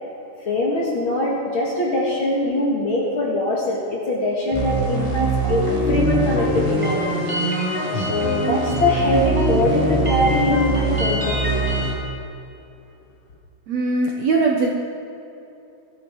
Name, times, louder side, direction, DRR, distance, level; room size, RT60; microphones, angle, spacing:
voice 1, 0.4-11.7, left 1 dB, 45° left, -3 dB, 2.1 m, -23 dB
sound 1, 4.5-11.9, right 1 dB, 10° right, 2.4 m, -22 dB
voice 2, 13.7-14.7, right 3 dB, 65° right, 0 dB, 1.9 m, -20 dB
17.5 x 13.0 x 4.7 m, 2.8 s
omnidirectional pair, 4.1 m